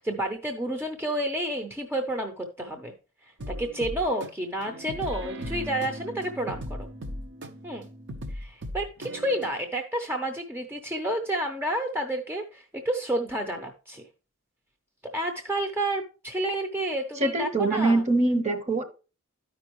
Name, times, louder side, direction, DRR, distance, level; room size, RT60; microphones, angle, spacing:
voice 1, 0.0-2.9 3.5-6.9 7.6-7.9 8.3-14.1 15.1-18.0, right 1 dB, 10° right, 5 dB, 0.6 m, -30 dB
sound 1, 3.4-9.5, equal, 55° right, 0.8 m, -38 dB
voice 2, 17.2-18.8, right 2 dB, 35° right, 7 dB, 1.0 m, -23 dB
13.0 x 5.2 x 3.0 m, 0.33 s
head